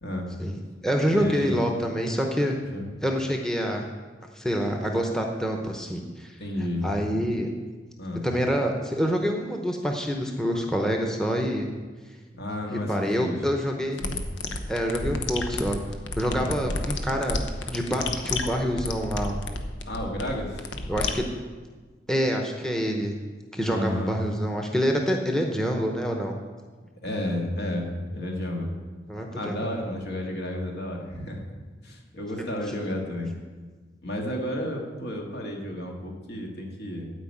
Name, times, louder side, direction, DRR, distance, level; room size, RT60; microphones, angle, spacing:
voice 1, 0.4-2.6 3.0-3.8 4.3-6.3 6.8-7.5 8.2-11.7 12.7-14.0 14.7-15.8 16.2-19.4 20.9-21.2 22.1-23.1 23.5-26.3 29.1-29.6, equal, 5° left, 2 dB, 0.9 m, -26 dB
voice 2, 1.1-1.7 2.7-2.9 6.4-6.9 8.0-8.2 12.4-13.4 14.0-14.2 16.3-16.6 19.8-20.6 23.7-24.1 27.0-28.7 29.3-31.4 31.8-33.3 34.0-37.1, left 1 dB, 65° left, 0 dB, 2.1 m, -32 dB
sound 1, 14.0-21.1, left 3 dB, 90° left, 1.0 m, -31 dB
12.5 x 5.2 x 8.6 m, 1.4 s
head